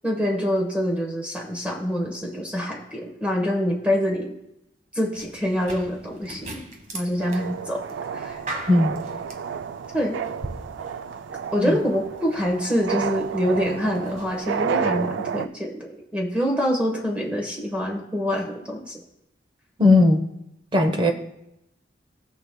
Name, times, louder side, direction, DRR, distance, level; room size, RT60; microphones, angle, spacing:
voice 1, 0.0-4.3 4.9-6.6 6.9-7.8 8.1-8.4 9.9-10.2 11.5-19.0, equal, 5° right, 0 dB, 1.1 m, -25 dB
sound 1, 5.1-14.6, right 2 dB, 40° right, 1.3 m, -41 dB
sound 2, 7.2-15.5, right 6 dB, 75° right, 0.3 m, -31 dB
voice 2, 8.7-9.0 11.6-11.8 19.8-20.2 20.7-21.1, left 2 dB, 25° right, 5 dB, 0.9 m, -17 dB
18.5 x 6.3 x 2.2 m, 0.87 s
head